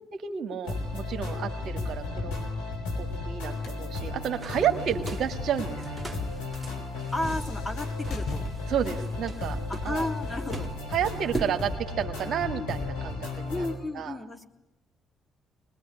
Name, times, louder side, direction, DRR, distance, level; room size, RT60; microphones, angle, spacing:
voice 1, 0.1-2.4 3.0-5.9 8.7-9.6 9.9-10.1 10.9-13.7 13.9-14.2, right 8 dB, 65° right, 6 dB, 2.0 m, -31 dB
sound 1, 0.6-13.7, left 3 dB, 85° left, 4.1 m, -34 dB
sound 2, 3.3-8.9, left 3 dB, 65° left, 3.4 m, -43 dB
sound 3, 4.4-11.6, right 2 dB, 20° right, 2.6 m, -41 dB
voice 2, 7.1-8.4 9.7-10.7 13.5-14.5, left 2 dB, 20° left, 4 dB, 3.2 m, -33 dB
24.5 x 21.0 x 9.9 m, 0.91 s
hypercardioid pair, 50°, 0 cm